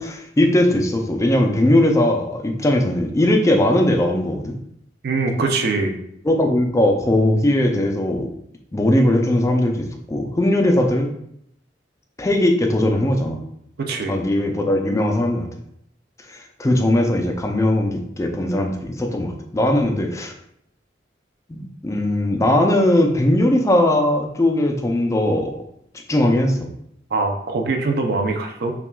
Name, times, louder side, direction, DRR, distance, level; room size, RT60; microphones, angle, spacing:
voice 1, 0.0-4.6 6.2-8.3 8.7-11.1 12.2-13.4 14.1-15.5 16.3-20.3 21.5-25.5 26.1-26.7, left 1 dB, 15° left, 3 dB, 0.4 m, -19 dB
voice 2, 5.0-5.9 13.9-14.1 27.1-28.7, right 3 dB, 60° right, 4 dB, 0.5 m, -22 dB
5.7 x 2.3 x 2.2 m, 0.73 s
head